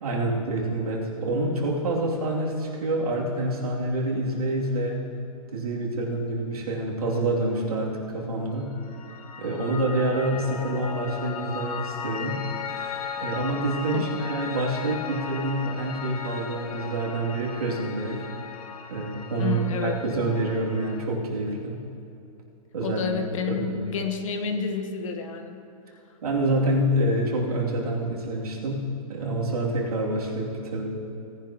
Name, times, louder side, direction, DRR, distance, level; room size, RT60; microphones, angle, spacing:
voice 1, 0.0-5.1 5.5-8.8 9.4-12.4 13.2-18.3 18.9-21.8 22.7-23.0 23.5-23.8 26.2-30.9, right 1 dB, 90° right, -3 dB, 2.8 m, -27 dB
Piano, 8.7-21.1, left 6 dB, 85° left, 0.9 m, -37 dB
voice 2, 19.4-20.0 22.8-25.6, left 6 dB, 60° left, 6 dB, 1.3 m, -29 dB
18.0 x 10.5 x 3.0 m, 2.7 s
hypercardioid pair, 155°, 19 cm